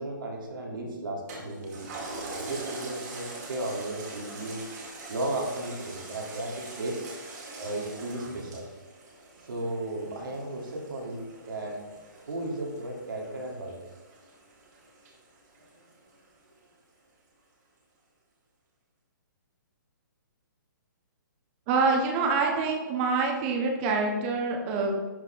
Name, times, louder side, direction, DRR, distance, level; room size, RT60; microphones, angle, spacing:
voice 1, 0.0-1.8 2.3-4.6 5.1-7.1 7.6-8.7 9.4-12.0 12.3-13.8 15.7-15.9, right 1 dB, 80° right, -1 dB, 2.1 m, -35 dB
Toilet flush, 1.3-16.1 16.6-16.7, right 2 dB, 55° right, 2.3 m, -43 dB
voice 2, 21.7-24.9, right 4 dB, 30° right, 2 dB, 1.3 m, -26 dB
12.0 x 4.1 x 3.1 m, 1.2 s
hypercardioid pair, 145°, 11 cm